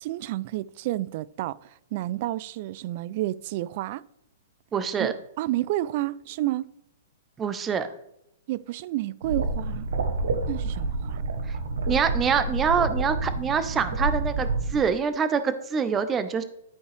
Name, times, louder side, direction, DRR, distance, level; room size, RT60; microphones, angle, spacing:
voice 1, 0.0-4.0 5.0-6.7 8.5-9.9 10.5-11.2, right 15 dB, 50° right, 0.3 m, -30 dB
voice 2, 4.7-5.1 7.4-7.9 11.5-11.6 11.9-16.4, right 6 dB, 20° right, 0.7 m, -25 dB
sound 1, 9.2-14.8, right 3 dB, 80° right, 1.0 m, -28 dB
11.5 x 4.5 x 3.3 m
hypercardioid pair, 130°, 0 cm